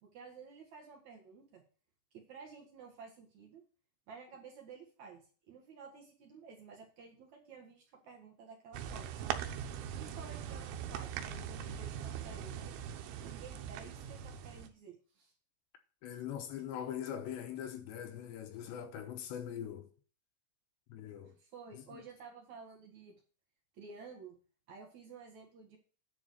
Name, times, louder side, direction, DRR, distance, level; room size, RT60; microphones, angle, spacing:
voice 1, 0.0-1.6 2.1-3.6 4.1-9.4 9.9-12.7 13.2-15.3 21.2-23.2 23.7-24.4 24.7-25.8, right 5 dB, 55° right, 2.2 m, -53 dB
sound 1, 8.7-14.7, right 9 dB, 90° right, 3.3 m, -41 dB
voice 2, 16.0-19.9 20.9-21.3 21.7-22.0, left 9 dB, 75° left, 3.0 m, -42 dB
10.0 x 4.9 x 6.4 m
omnidirectional pair, 5.3 m